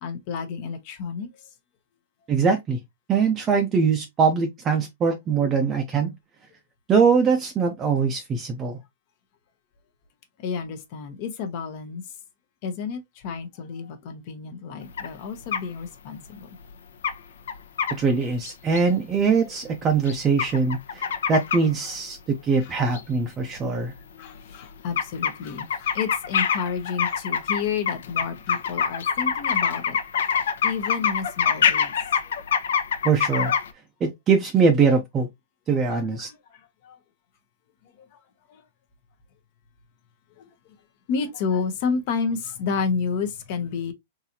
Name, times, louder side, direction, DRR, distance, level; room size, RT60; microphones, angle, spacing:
voice 1, 0.0-1.5 10.4-12.1 12.6-16.6 21.9-22.0 22.6-22.8 24.2-30.3 30.6-31.9 32.2-32.6 35.9-37.0 38.0-38.2 38.5-38.6 40.4-40.7 41.1-43.9, left 5 dB, 45° left, 0.8 m, -31 dB
voice 2, 2.3-2.8 3.1-6.1 6.9-8.8 17.9-23.9 33.0-33.5 34.0-35.3 35.7-36.3, right 5 dB, 20° right, 0.5 m, -22 dB
sound 1, 15.0-15.1 15.5-15.6 16.7-16.8 17.0-17.2 17.5-17.9 18.4-18.8 20.0-21.6 22.9-23.0 23.6-23.7 23.9-24.0 24.3-24.6 25.0-33.7, left 7 dB, 80° left, 0.8 m, -25 dB
3.9 x 2.7 x 2.8 m
supercardioid pair, 155°, 0 cm